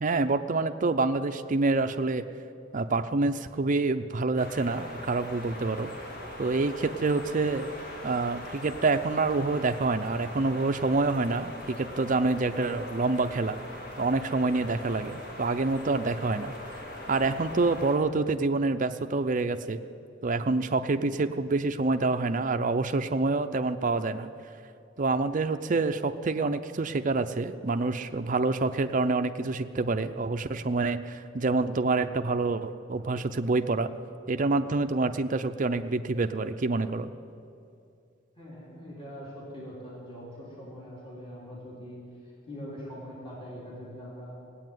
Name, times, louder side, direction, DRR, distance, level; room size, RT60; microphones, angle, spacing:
voice 1, 0.0-2.2 2.7-5.9 6.4-7.7 8.0-13.6 14.0-16.5 17.1-19.8 20.2-24.3 25.0-33.9 34.3-37.1, right 3 dB, 40° right, 8 dB, 0.6 m, -27 dB
sound 1, 4.4-18.0, left 1 dB, 50° left, 2.3 m, -41 dB
voice 2, 38.3-42.0 42.5-44.4, equal, 30° left, -6 dB, 3.2 m, -42 dB
17.5 x 8.5 x 9.3 m, 2.4 s
head